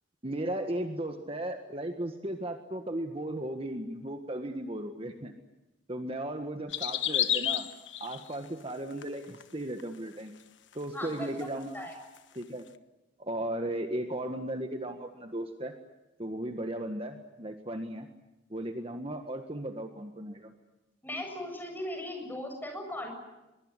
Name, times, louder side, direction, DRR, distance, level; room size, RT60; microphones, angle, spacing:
voice 1, 0.2-5.3 5.9-7.7 8.0-10.3 10.8-11.9 12.4-12.7 13.2-15.8 16.2-18.1 18.5-20.5, right 1 dB, 30° right, 6 dB, 1.7 m, -36 dB
sound 1, 6.7-8.4 8.9-9.4 9.8-9.9 10.7-10.8 11.1-11.2 12.2-12.3, left 11 dB, 80° left, 1.3 m, -30 dB
voice 2, 10.9-11.5 11.7-11.9 21.0-23.1, left 1 dB, 10° left, 3 dB, 7.7 m, -38 dB
23.5 x 23.0 x 9.8 m, 0.99 s
head